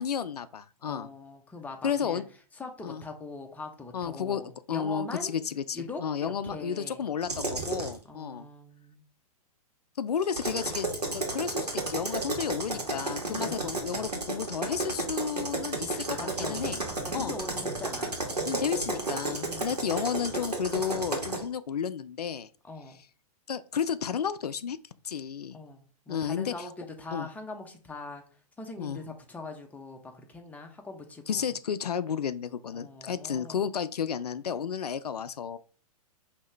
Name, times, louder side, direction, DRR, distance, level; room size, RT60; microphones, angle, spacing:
voice 1, 0.0-1.1 1.8-2.2 2.8-3.0 3.9-4.4 4.7-8.5 10.0-16.8 17.1-17.3 18.5-22.5 23.5-24.8 25.0-25.6 26.1-26.5 27.1-27.3 28.8-29.0 31.3-35.6, left 7 dB, 80° left, 0.4 m, -32 dB
voice 2, 0.9-2.2 2.5-5.4 5.7-7.0 8.0-9.0 13.4-13.7 16.1-16.8 17.0-18.8 19.4-19.8 22.6-23.0 25.5-28.2 28.6-31.5 32.7-33.7, left 3 dB, 10° left, 0.8 m, -42 dB
sound 1, 7.2-8.0 10.2-21.4, right 2 dB, 90° right, 1.4 m, -32 dB
5.3 x 2.8 x 3.3 m
figure-of-eight pair, 110°, 20 cm